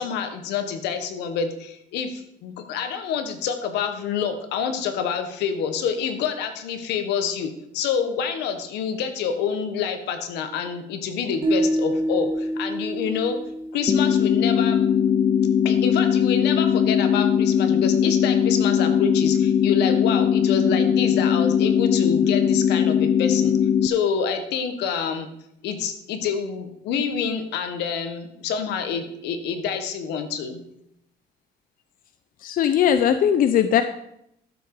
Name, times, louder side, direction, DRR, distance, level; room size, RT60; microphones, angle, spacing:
voice 1, 0.0-13.4 13.7-14.8 15.6-23.5 23.8-25.3 25.6-30.6, left 6 dB, 85° left, 8 dB, 1.6 m, -27 dB
sound 1, 11.4-14.6, right 1 dB, 30° right, 2.8 m, -27 dB
sound 2, 13.9-23.9, left 8 dB, 25° left, 0.3 m, -20 dB
voice 2, 32.4-33.8, left 9 dB, 55° left, 10 dB, 0.7 m, -19 dB
12.5 x 7.4 x 4.9 m, 0.77 s
cardioid pair, 110°, 17 cm